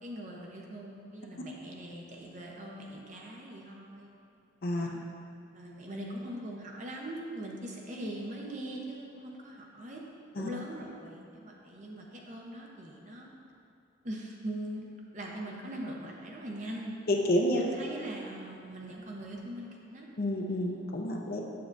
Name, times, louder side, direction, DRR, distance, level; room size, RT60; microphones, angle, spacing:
voice 1, 0.0-4.1 4.7-5.0 5.5-10.0 10.4-13.3 14.0-14.9 15.1-17.0 17.5-20.1, right 1 dB, 40° right, -1 dB, 0.8 m, -41 dB
voice 2, 17.1-17.6 20.2-21.4, left 1 dB, 50° left, 0 dB, 0.6 m, -29 dB
8.4 x 6.9 x 2.6 m, 2.7 s
head